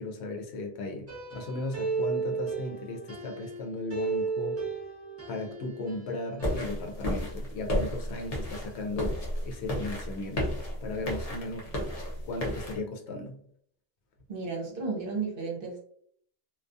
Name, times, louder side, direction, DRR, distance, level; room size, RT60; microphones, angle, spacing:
voice 1, 0.0-4.6 5.3-11.7 12.2-13.4, left 2 dB, 75° left, 2 dB, 0.8 m, -36 dB
sound 1, 1.1-3.6 3.9-6.1 6.4-6.7, right 4 dB, 15° right, 0.6 m, -34 dB
sound 2, 6.4-12.8, left 1 dB, 45° left, 0.5 m, -33 dB
voice 2, 14.3-15.8, right 4 dB, 55° right, -2 dB, 0.9 m, -33 dB
2.3 x 2.3 x 2.5 m, 0.63 s
omnidirectional pair, 1.1 m